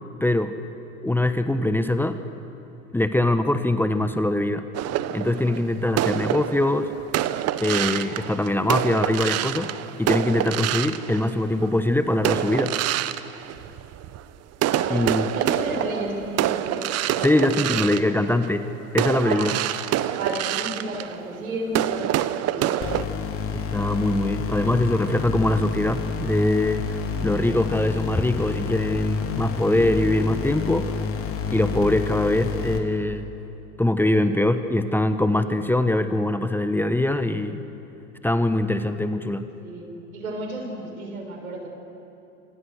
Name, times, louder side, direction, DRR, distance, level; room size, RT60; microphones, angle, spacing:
voice 1, 0.2-0.5 1.0-2.2 2.9-4.6 5.1-6.9 7.6-9.7 10.0-12.7 14.9-15.3 17.2-18.7 18.9-19.5 23.5-30.9 31.5-33.3 33.8-37.6 38.2-39.5, left 1 dB, 5° left, 9 dB, 1.2 m, -22 dB
sound 1, 4.7-11.7 12.2-14.2 14.5-23.0, right 13 dB, 35° right, 1.1 m, -27 dB
voice 2, 14.6-18.2 19.2-19.6 20.1-23.0 39.6-41.7, right 1 dB, 80° right, 2 dB, 6.5 m, -33 dB
sound 2, 22.8-32.8, left 5 dB, 30° left, 3.4 m, -29 dB
28.0 x 27.0 x 6.6 m, 2.8 s
hypercardioid pair, 85°, 41 cm